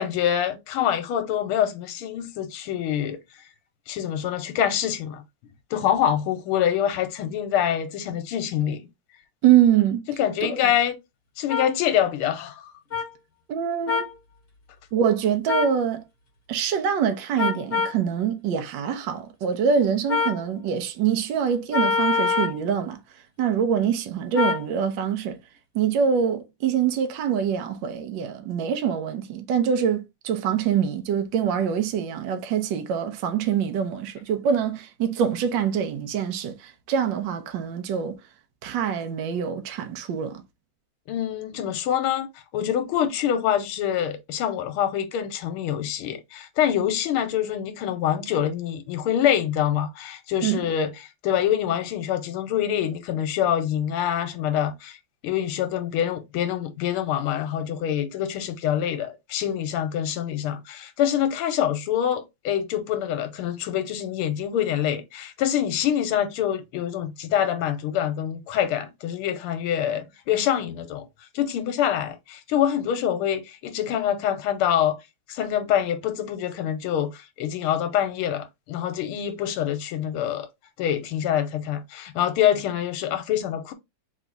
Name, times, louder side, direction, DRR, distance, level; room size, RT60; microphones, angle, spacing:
voice 1, 0.0-3.2 3.9-5.2 5.7-8.9 10.2-10.9 11.4-12.7 41.1-50.9 51.2-55.0 55.2-71.1 71.3-75.0 75.3-80.5 80.8-83.7, left 10 dB, 85° left, 1.6 m, -25 dB
voice 2, 9.4-10.1 13.5-14.1 14.9-16.0 16.5-23.0 23.4-25.4 25.7-38.2 38.6-40.4 50.4-50.7, right 8 dB, 65° right, 1.3 m, -24 dB
sound 1, 11.5-11.7 12.9-13.0 13.9-14.1 15.5-15.8 17.4-18.0 20.1-20.4 21.7-22.6 24.3-24.6, left 5 dB, 35° left, 1.0 m, -24 dB
3.6 x 3.2 x 3.9 m
omnidirectional pair, 2.4 m